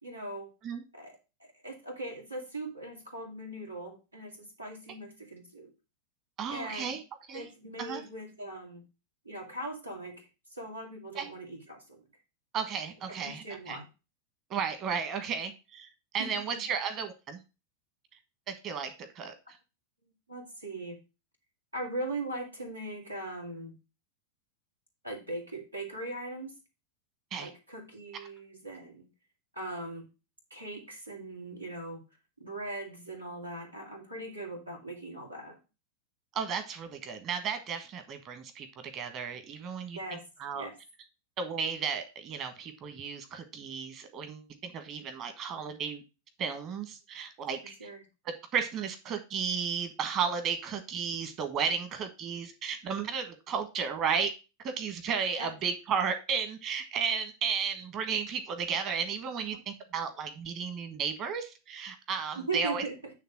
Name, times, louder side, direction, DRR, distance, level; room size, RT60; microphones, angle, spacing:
voice 1, 0.0-0.5 0.9-5.7 6.5-7.0 7.3-8.8 9.2-12.1 13.1-13.9 16.2-16.6 20.3-21.0 21.7-23.7 25.0-26.5 27.4-29.1 29.5-30.0 30.5-32.0 32.4-35.6 39.9-40.2 40.5-40.7 47.6-48.0 55.4-55.5 62.4-63.0, right 2 dB, 85° right, 0 dB, 2.4 m, -40 dB
voice 2, 6.4-7.0 7.3-7.5 7.8-8.0 11.1-11.3 12.5-13.8 14.5-15.9 16.1-17.4 18.5-19.3 27.3-27.5 36.3-38.7 38.9-40.7 41.4-46.0 46.4-47.9 48.2-54.3 54.6-62.8, right 6 dB, 35° right, 8 dB, 1.4 m, -34 dB
9.4 x 3.5 x 6.0 m, 0.28 s
figure-of-eight pair, 90°, 0 cm